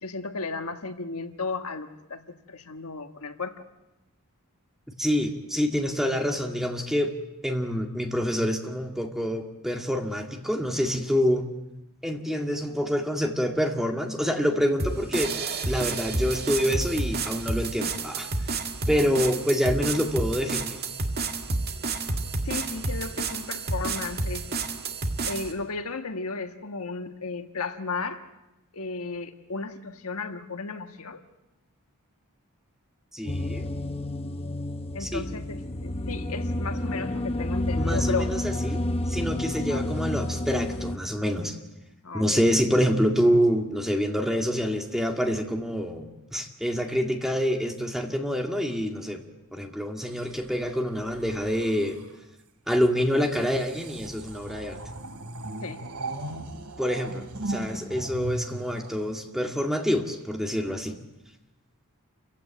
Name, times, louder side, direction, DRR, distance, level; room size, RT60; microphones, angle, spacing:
voice 1, 0.0-2.2 2.5-3.7 19.0-19.1 22.4-24.5 25.2-28.2 28.7-31.2 34.9-38.3 39.7-39.8 42.0-42.4 55.6-55.8, left 4 dB, 75° left, 7 dB, 1.4 m, -34 dB
voice 2, 5.0-7.1 7.4-11.5 12.0-15.3 15.7-18.3 18.9-20.8 33.1-33.7 35.0-35.2 37.8-38.8 39.1-41.6 42.1-49.2 49.5-52.0 52.7-54.8 56.8-61.0, equal, ahead, 3 dB, 2.1 m, -26 dB
sound 1, 14.8-25.5, right 3 dB, 45° right, 1.9 m, -30 dB
sound 2, 33.3-41.0, left 1 dB, 25° left, 0.9 m, -30 dB
sound 3, 50.1-52.2 53.2-59.7 60.6-60.9, right 1 dB, 90° right, 2.9 m, -38 dB
28.5 x 16.0 x 9.1 m, 1.0 s
head